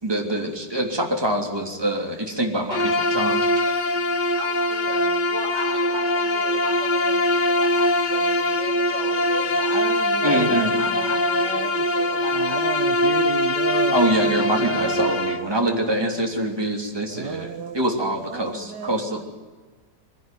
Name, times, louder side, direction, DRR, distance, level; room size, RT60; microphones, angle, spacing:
voice 1, 0.0-3.6 10.2-10.7 13.9-17.5 17.7-19.2, right 1 dB, 10° right, 1 dB, 3.2 m, -25 dB
Bowed string instrument, 2.7-15.5, left 1 dB, 35° left, 0.9 m, -22 dB
voice 2, 4.3-9.8 10.2-10.5 10.8-13.2, right 1 dB, 35° right, -1 dB, 7.2 m, -37 dB
voice 3, 9.7-11.8 12.3-15.2 17.1-17.8 18.3-19.2, right 7 dB, 65° right, 8 dB, 1.6 m, -33 dB
22.5 x 17.0 x 9.3 m, 1.4 s
omnidirectional pair, 2.0 m